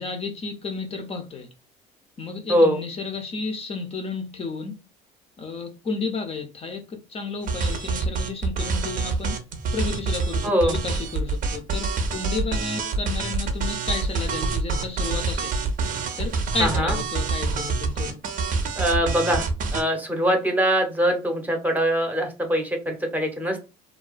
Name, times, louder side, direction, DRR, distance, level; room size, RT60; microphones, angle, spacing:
voice 1, 0.0-1.5 2.2-4.8 5.4-9.4 9.7-15.6 16.2-18.2, left 4 dB, 35° left, 0.5 m, -32 dB
sound 1, 7.5-19.8, right 4 dB, 55° right, 0.6 m, -26 dB
voice 2, 10.4-10.8 16.6-16.9 18.8-23.7, equal, 10° right, 0.7 m, -23 dB
2.3 x 2.3 x 2.4 m
supercardioid pair, 95°, 17 cm